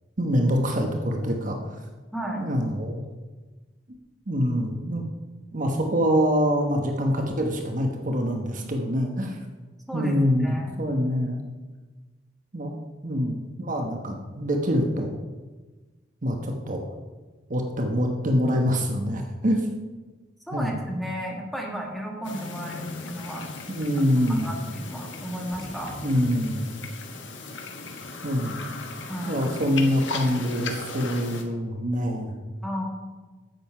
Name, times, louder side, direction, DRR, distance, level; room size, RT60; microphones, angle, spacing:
voice 1, 0.2-1.6 2.4-3.0 4.3-5.0 5.5-9.4 9.9-11.4 12.5-12.7 13.0-15.1 16.2-16.8 17.5-19.7 20.5-20.7 23.7-24.5 26.0-26.7 28.2-28.6 29.3-32.3, equal, 45° right, 3 dB, 1.1 m, -25 dB
voice 2, 2.1-2.4 9.9-10.2 10.4-10.8 13.0-13.2 20.5-23.5 24.3-25.9 29.1-29.5 32.6-32.8, equal, ahead, -1 dB, 1.7 m, -33 dB
sound 1, 22.2-31.4, left 3 dB, 85° left, 1.3 m, -36 dB
9.2 x 7.9 x 5.6 m, 1.3 s
head